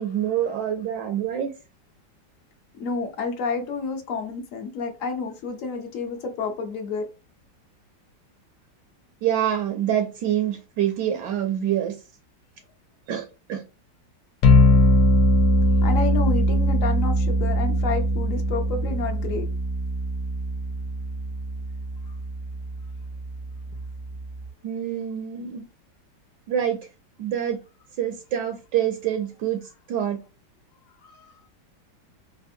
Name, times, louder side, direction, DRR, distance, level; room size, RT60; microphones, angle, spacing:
voice 1, 0.0-1.5 9.2-12.0 13.1-13.6 24.6-25.6 26.5-26.8 27.2-27.6 28.0-29.6 29.9-30.2, right 10 dB, 75° right, 1.2 m, -26 dB
voice 2, 2.8-7.1 15.8-19.5 31.0-31.3, left 4 dB, 60° left, 0.9 m, -30 dB
sound 1, 14.4-24.5, left 1 dB, 80° left, 1.3 m, -22 dB
3.4 x 2.5 x 2.5 m
omnidirectional pair, 2.0 m